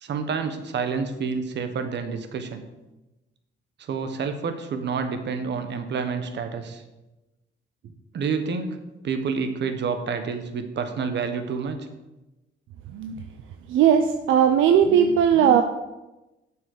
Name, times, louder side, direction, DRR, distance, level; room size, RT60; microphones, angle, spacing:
voice 1, 0.0-2.6 3.8-6.8 8.1-8.8 9.0-11.8, right 5 dB, 60° right, 8 dB, 1.2 m, -28 dB
voice 2, 13.7-15.6, right 8 dB, 80° right, 7 dB, 0.6 m, -18 dB
7.5 x 6.0 x 6.6 m, 1.0 s
cardioid pair, 90°, 20 cm